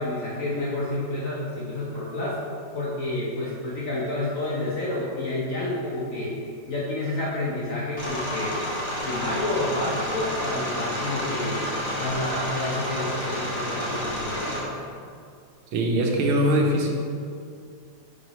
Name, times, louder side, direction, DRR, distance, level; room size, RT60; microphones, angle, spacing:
voice 1, 0.0-2.4 2.7-6.4 6.7-8.6 9.0-11.6 12.0-14.8, left 2 dB, 60° left, -6 dB, 0.9 m, -29 dB
sound 1, 8.0-14.6, equal, 30° left, 1.0 m, -30 dB
voice 2, 15.7-16.9, right 1 dB, 80° right, 1 dB, 1.6 m, -21 dB
6.2 x 5.8 x 3.1 m, 2.3 s
omnidirectional pair, 2.3 m